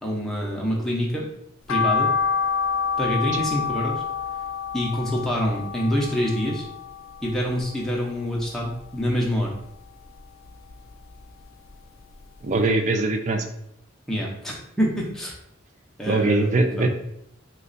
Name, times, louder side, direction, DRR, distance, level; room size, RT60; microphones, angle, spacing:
voice 1, 0.0-1.2 1.7-2.1 3.0-3.9 4.7-6.7 7.2-9.6 14.1-15.3 16.0-16.5 16.8-16.9, equal, ahead, -4 dB, 0.6 m, -26 dB
sound 1, 1.7-8.0 8.4-9.5 9.9-11.3 11.7-11.8 12.2-12.3 12.6-12.7, left 5 dB, 75° left, 0.3 m, -28 dB
voice 2, 12.4-13.5 16.1-16.9, right 2 dB, 35° right, 6 dB, 0.4 m, -22 dB
3.2 x 2.3 x 3.9 m, 0.75 s
head